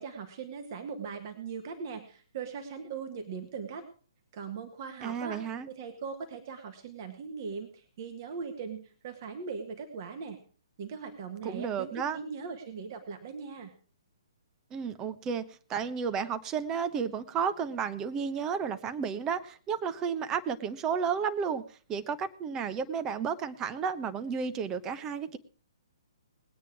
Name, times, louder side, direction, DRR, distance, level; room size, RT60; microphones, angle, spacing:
voice 1, 0.0-3.9 4.3-5.4 5.7-10.4 10.8-13.7, right 5 dB, 40° right, 6 dB, 1.8 m, -40 dB
voice 2, 5.0-5.7 11.4-12.2 14.7-15.4 15.7-21.6 21.9-25.4, right 6 dB, 20° right, 11 dB, 0.9 m, -32 dB
20.0 x 9.3 x 4.7 m, 0.40 s
figure-of-eight pair, 130°, 3 cm